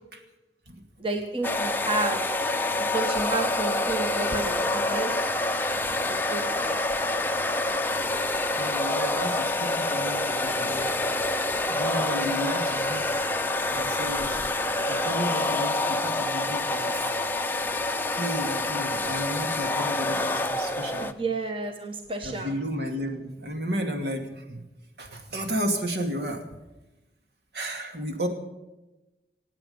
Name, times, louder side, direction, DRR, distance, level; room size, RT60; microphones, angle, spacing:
voice 1, 1.0-2.2 2.9-5.1 6.1-6.8 21.0-22.5, right 3 dB, 30° right, 3 dB, 1.3 m, -31 dB
sound 1, 1.4-21.1, left 2 dB, 10° left, 0.6 m, -27 dB
voice 2, 8.6-11.0 11.7-13.2 13.7-14.4 14.9-17.1 18.1-21.1 22.2-24.6 25.0-26.4 27.5-28.3, equal, 70° right, 4 dB, 2.5 m, -33 dB
26.0 x 8.9 x 5.5 m, 1.0 s
head